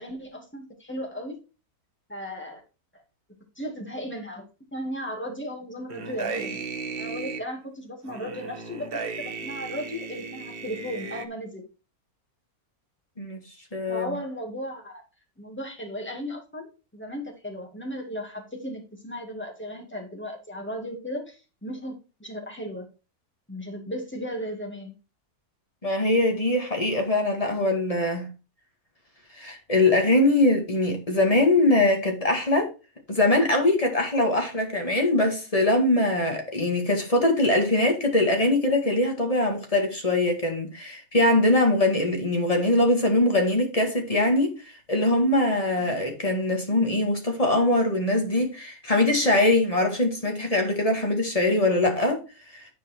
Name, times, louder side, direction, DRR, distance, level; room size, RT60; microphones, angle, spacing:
voice 1, 0.0-1.4 2.1-2.6 2.9-3.0 3.6-6.6 7.0-8.9 9.2-11.6 13.9-15.0 15.4-21.9 22.2-22.9 23.5-24.9 45.7-46.0, equal, 5° left, 2.2 m, -36 dB
sound 1, 5.9-7.4 8.1-11.3, right 4 dB, 45° right, 1.0 m, -35 dB
voice 2, 13.7-14.2 25.8-28.3 29.4-32.7 33.1-44.6 44.9-52.2, left 2 dB, 25° left, 1.9 m, -22 dB
10.5 x 4.6 x 4.5 m
omnidirectional pair, 1.6 m